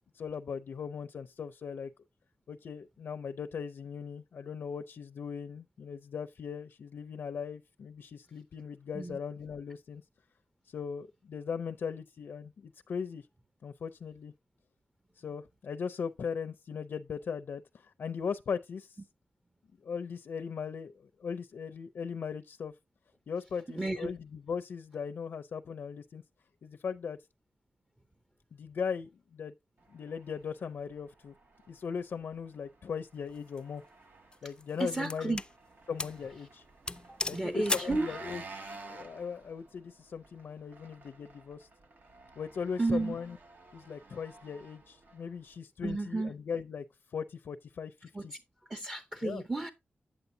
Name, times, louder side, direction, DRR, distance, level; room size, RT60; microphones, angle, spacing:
voice 1, 0.1-1.9 2.5-10.0 10.7-13.3 13.6-14.3 15.2-19.0 19.8-22.7 23.3-26.2 26.6-27.2 28.5-29.5 29.9-31.3 31.7-33.8 34.4-35.4 35.9-36.6 37.3-41.7 42.4-43.4 43.7-46.8 47.1-48.3 49.2-49.4, left 6 dB, 80° left, 0.5 m, -39 dB
voice 2, 23.7-24.1 34.8-35.4 37.1-38.1 42.8-43.2 45.8-46.3 48.1-48.3 48.7-49.7, right 2 dB, 15° right, 0.7 m, -32 dB
Engine, 29.8-45.6, right 3 dB, 60° right, 1.3 m, -52 dB
sound 1, 33.3-33.6 34.3-35.5 36.0-36.2 36.5-36.6 36.9-38.0, left 3 dB, 25° left, 0.4 m, -36 dB
8.8 x 8.0 x 2.7 m
wide cardioid pair, 115°, 4 cm